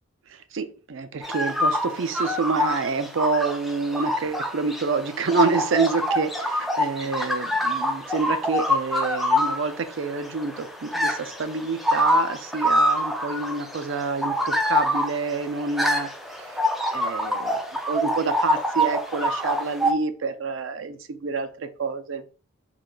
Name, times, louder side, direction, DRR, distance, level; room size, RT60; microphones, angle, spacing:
voice 1, 0.3-16.1 16.4-16.6 16.9-22.2, right 4 dB, 65° right, 10 dB, 0.4 m, -28 dB
sound 1, 1.2-19.9, left 1 dB, ahead, 0.3 m, -26 dB
4.0 x 3.2 x 2.2 m, 0.39 s
head